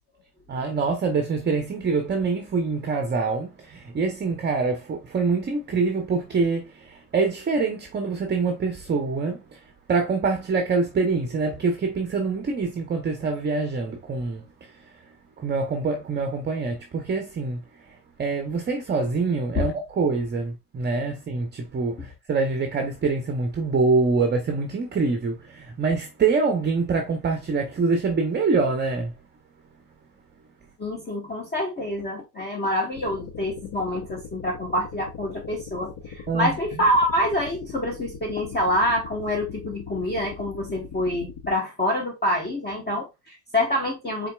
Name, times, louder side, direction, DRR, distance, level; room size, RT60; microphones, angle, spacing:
voice 1, 0.5-9.6 9.9-14.7 15.4-29.1 36.3-36.5, right 4 dB, 20° right, 0.7 m, -25 dB
voice 2, 30.8-44.3, left 1 dB, 20° left, 1.1 m, -26 dB
sound 1, 32.9-41.5, left 6 dB, 45° left, 1.0 m, -40 dB
4.2 x 4.1 x 2.2 m
supercardioid pair, 95°, 50 cm